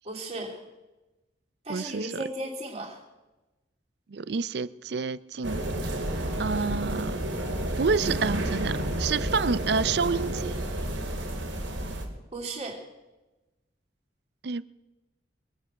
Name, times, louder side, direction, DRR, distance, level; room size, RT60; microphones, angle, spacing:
voice 1, 0.0-0.6 1.6-3.0 12.3-12.8, right 2 dB, 35° right, 3.0 m, -35 dB
voice 2, 1.7-2.2 4.1-5.6 6.4-7.2 7.8-10.6 14.4-14.6, right 5 dB, 60° right, 0.5 m, -28 dB
sound 1, 5.4-12.1, right 1 dB, 80° right, 2.4 m, -30 dB
22.5 x 8.6 x 6.3 m
head